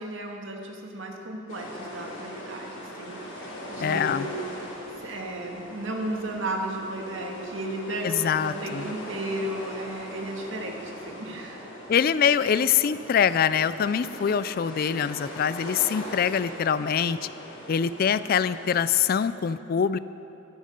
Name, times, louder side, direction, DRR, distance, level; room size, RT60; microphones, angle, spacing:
voice 1, 0.0-3.4 3.7-4.5 5.0-11.7, right 1 dB, 70° right, 1 dB, 1.7 m, -34 dB
sound 1, 1.5-19.0, equal, 70° left, 3.2 m, -40 dB
voice 2, 3.8-4.3 8.0-8.9 11.9-17.2 17.7-20.0, left 7 dB, 50° left, 15 dB, 0.3 m, -24 dB
13.5 x 12.5 x 5.2 m, 2.9 s
head